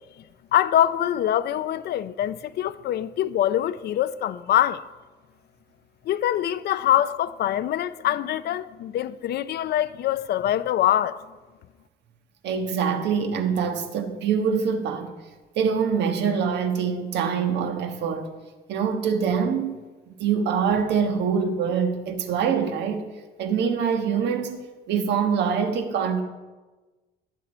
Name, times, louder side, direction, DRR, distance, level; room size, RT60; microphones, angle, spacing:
voice 1, 0.5-4.8 6.0-11.2, left 11 dB, 60° left, 0.6 m, -24 dB
voice 2, 12.4-15.1 15.6-18.3 18.7-19.8 20.1-23.0 23.4-24.6 24.9-26.2, right 6 dB, 70° right, 1.5 m, -24 dB
20.0 x 8.2 x 4.4 m
cardioid pair, 145°, 19 cm